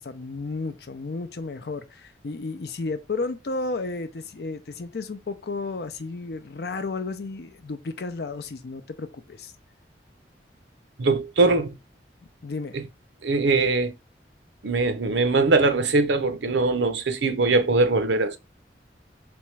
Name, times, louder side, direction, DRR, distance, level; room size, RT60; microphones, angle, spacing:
voice 1, 0.0-9.5 12.4-12.8, left 3 dB, 60° left, 0.5 m, -33 dB
voice 2, 11.0-11.7 13.2-13.9 14.6-18.4, right 3 dB, 85° right, 0.7 m, -21 dB
3.4 x 3.2 x 3.1 m
head